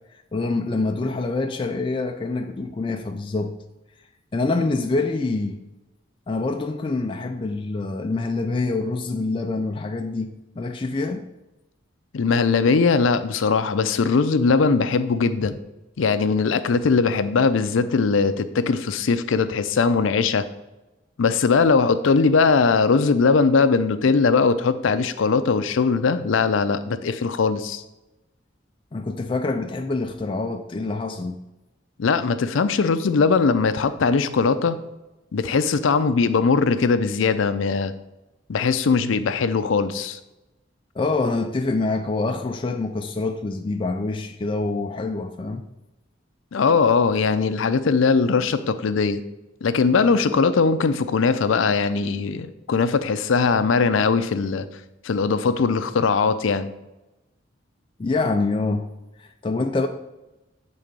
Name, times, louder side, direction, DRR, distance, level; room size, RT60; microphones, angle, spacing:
voice 1, 0.3-3.5 4.3-5.6 6.3-11.3 28.9-31.4 40.9-45.6 58.0-58.9 59.2-59.9, left 3 dB, 25° left, 0.3 m, -26 dB
voice 2, 12.1-15.6 16.0-20.4 21.2-27.8 32.0-34.8 35.3-37.9 38.5-40.2 46.5-49.2 49.6-54.7 55.0-56.7, left 4 dB, 85° left, 0.5 m, -20 dB
7.3 x 3.8 x 5.2 m
head